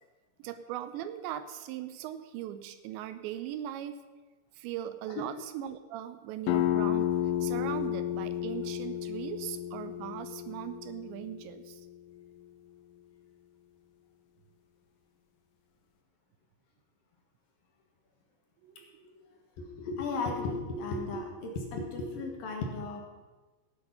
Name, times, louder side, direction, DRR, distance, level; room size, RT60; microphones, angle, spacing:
voice 1, 0.4-4.0 4.5-11.8 18.6-19.0, right 11 dB, 80° right, 11 dB, 2.8 m, -39 dB
sound 1, 6.5-11.9, left 11 dB, 85° left, 3.2 m, -32 dB
voice 2, 19.6-23.0, left 3 dB, 65° left, 1 dB, 2.8 m, -35 dB
17.0 x 8.3 x 5.6 m, 1.2 s
omnidirectional pair, 5.3 m